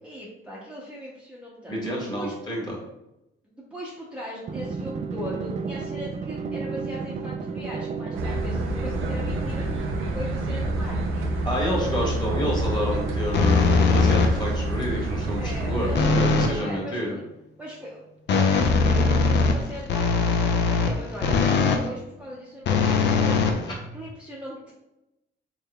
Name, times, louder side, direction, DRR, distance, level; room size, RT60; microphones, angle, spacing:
voice 1, 0.0-1.8 2.2-2.3 3.5-9.7 10.1-11.3 15.4-17.2 17.6-18.0 18.3-23.6 23.9-24.8, equal, 5° right, -6 dB, 0.7 m, -39 dB
voice 2, 1.7-2.7 11.4-17.2, equal, 20° left, -3 dB, 1.4 m, -29 dB
Drum, 4.5-16.8, right 4 dB, 35° right, 0.3 m, -34 dB
sound 1, 8.1-16.1, right 1 dB, 85° right, 0.5 m, -28 dB
sound 2, 13.3-14.6 16.0-16.6 18.3-21.9 22.7-24.1, left 4 dB, 60° left, 0.5 m, -21 dB
3.6 x 3.3 x 2.2 m, 0.88 s
cardioid pair, 90°, 20 cm